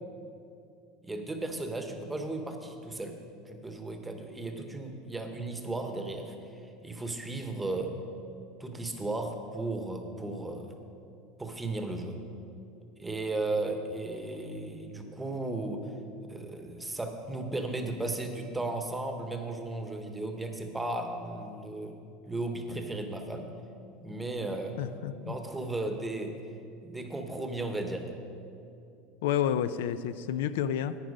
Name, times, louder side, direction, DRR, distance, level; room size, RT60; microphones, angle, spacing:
voice 1, 1.0-3.2 3.5-7.9 8.6-10.8 11.4-12.2 13.0-15.9 16.2-22.0 22.3-23.5 24.0-24.7 25.3-26.3 26.8-28.1, right 2 dB, 10° right, 5 dB, 0.9 m, -35 dB
voice 2, 24.8-25.3 29.2-31.0, left 9 dB, 85° left, 13 dB, 0.4 m, -30 dB
11.0 x 8.9 x 5.3 m, 2.6 s
supercardioid pair, 150°, 0 cm